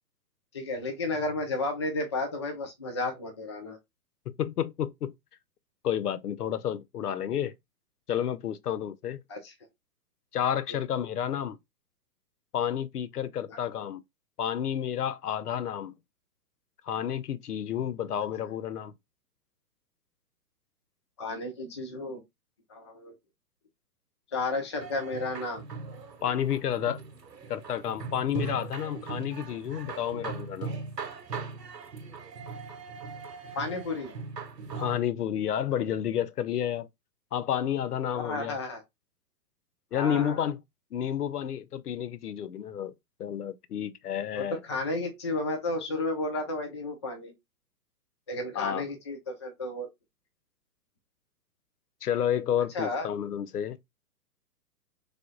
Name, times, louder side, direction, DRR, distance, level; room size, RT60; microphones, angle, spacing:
voice 1, 0.5-3.8 9.3-9.5 10.7-10.8 13.5-13.6 21.2-22.2 22.7-23.1 24.3-25.6 33.6-34.2 38.1-38.8 39.9-40.4 44.4-47.3 48.3-49.9 52.7-53.1, left 2 dB, 20° left, 0.4 m, -32 dB
voice 2, 4.3-5.1 5.8-7.5 8.1-9.2 10.3-11.6 12.5-14.0 14.4-15.9 16.8-18.9 26.2-27.0 27.5-30.7 34.8-36.9 37.3-38.5 39.9-40.6 40.9-42.9 43.2-44.6 48.6-48.8 52.0-53.8, left 9 dB, 70° left, 0.6 m, -30 dB
sound 1, 24.8-35.0, right 4 dB, 85° right, 0.9 m, -39 dB
3.4 x 2.3 x 3.7 m
figure-of-eight pair, 115°, 48 cm